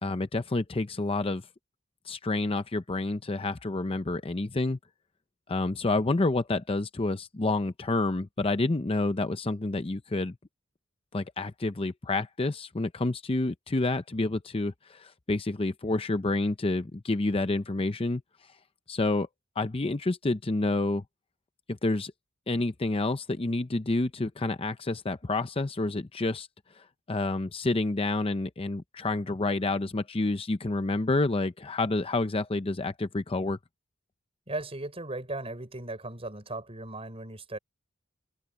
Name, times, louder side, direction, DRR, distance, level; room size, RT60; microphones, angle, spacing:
voice 1, 0.0-1.4 2.1-4.8 5.5-10.4 11.1-18.2 18.9-19.3 19.6-21.0 21.7-22.1 22.5-26.5 26.8-33.6, left 2 dB, 30° left, 0.6 m, -29 dB
voice 2, 34.5-37.6, right 2 dB, 30° right, 5.4 m, -37 dB
open air
head